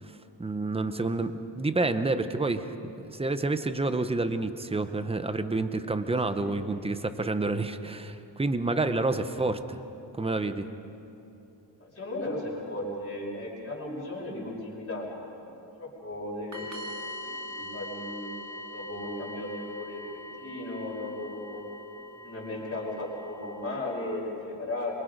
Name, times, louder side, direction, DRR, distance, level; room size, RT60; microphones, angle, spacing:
voice 1, 0.4-9.8 10.2-10.7, right 2 dB, 15° right, 10 dB, 0.7 m, -29 dB
voice 2, 6.0-6.6 11.8-15.1 15.3-18.3 18.7-21.6 22.2-25.0, left 1 dB, 30° left, -4 dB, 5.3 m, -36 dB
sound 1, 16.5-23.9, left 1 dB, 40° right, 2.1 m, -42 dB
27.0 x 23.5 x 5.2 m, 2.9 s
wide cardioid pair, 170°, 46 cm